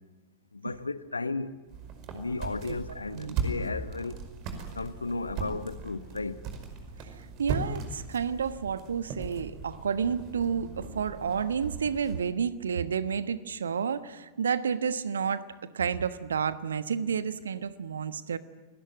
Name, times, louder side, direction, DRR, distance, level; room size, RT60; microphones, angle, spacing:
voice 1, 0.5-1.6 2.1-4.2 4.7-6.4, left 3 dB, 80° left, 1.1 m, -34 dB
sound 1, 1.7-12.2, right 5 dB, 40° right, 5.2 m, -38 dB
voice 2, 7.0-15.5 15.7-18.4, right 6 dB, 70° right, 1.2 m, -30 dB
29.5 x 20.5 x 9.3 m
figure-of-eight pair, 90°, 0 cm